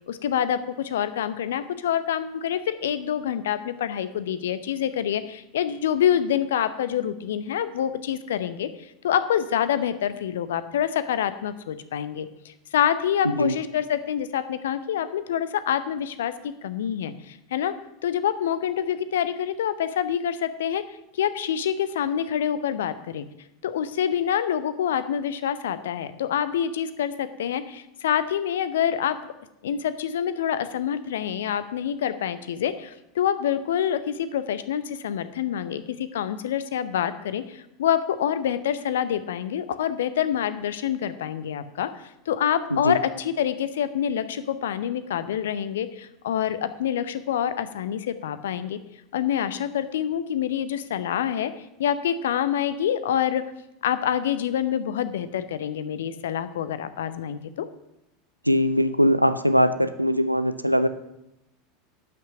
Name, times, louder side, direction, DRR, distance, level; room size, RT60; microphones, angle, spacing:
voice 1, 0.1-8.7 9.0-17.7 18.0-20.8 21.1-23.2 23.6-29.2 29.6-48.8 49.1-51.5 51.8-53.4 53.8-57.7, left 9 dB, 65° left, 14 dB, 0.7 m, -26 dB
voice 2, 58.5-60.9, equal, 90° right, 12 dB, 0.5 m, -21 dB
11.5 x 6.1 x 6.8 m, 0.86 s
figure-of-eight pair, 80°, 0 cm